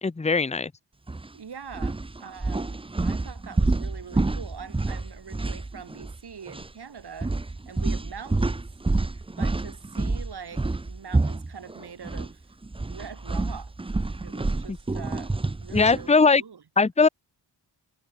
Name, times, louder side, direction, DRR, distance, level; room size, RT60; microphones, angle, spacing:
voice 1, 0.0-0.7 14.7-14.8 15.7-16.4 16.8-17.1, left 4 dB, 15° left, 0.9 m, -20 dB
sound 1, 1.1-1.3 1.7-6.2 6.5-6.7 7.2-12.3 12.6-16.1, right 2 dB, 10° right, 0.8 m, -28 dB
voice 2, 1.3-7.3 7.7-8.7 9.0-12.5 12.9-13.7 14.2-15.3 15.6-16.6, right 6 dB, 60° right, 6.9 m, -43 dB
cardioid pair, 80°, 44 cm